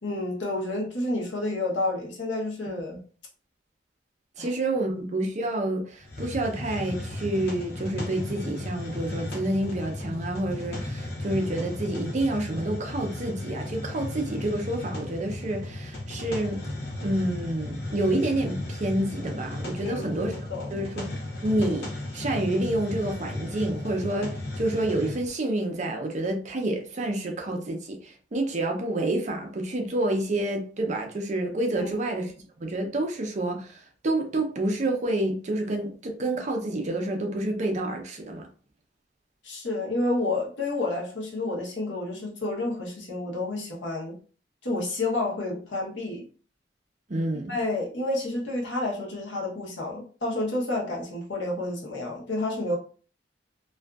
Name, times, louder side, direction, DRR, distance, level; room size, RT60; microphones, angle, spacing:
voice 1, 0.0-3.0 4.4-4.5 19.8-20.8 31.8-32.0 39.4-44.2 44.6-46.2 47.5-52.8, left 2 dB, 85° left, 0.9 m, -30 dB
voice 2, 4.4-16.6 17.0-20.4 20.7-21.2 21.4-21.9 22.1-32.3 32.6-38.5 47.1-47.6, right 1 dB, 40° right, 0.5 m, -28 dB
Hiss, 6.0-25.3, left 1 dB, 60° left, 0.7 m, -35 dB
2.5 x 2.4 x 2.3 m
head